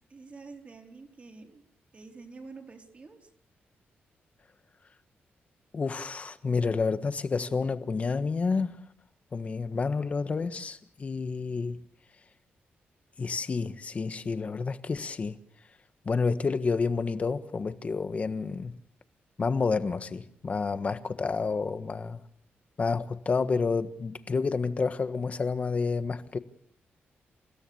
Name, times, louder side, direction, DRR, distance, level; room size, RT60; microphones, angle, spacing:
voice 1, 0.1-1.6 1.9-3.3, right 4 dB, 35° right, 4.2 m, -47 dB
voice 2, 5.7-8.8 9.3-11.8 13.2-15.4 16.0-18.8 19.4-22.2 22.8-26.4, left 4 dB, 35° left, 1.5 m, -29 dB
29.0 x 17.0 x 7.1 m
wide cardioid pair, 135°, 4 cm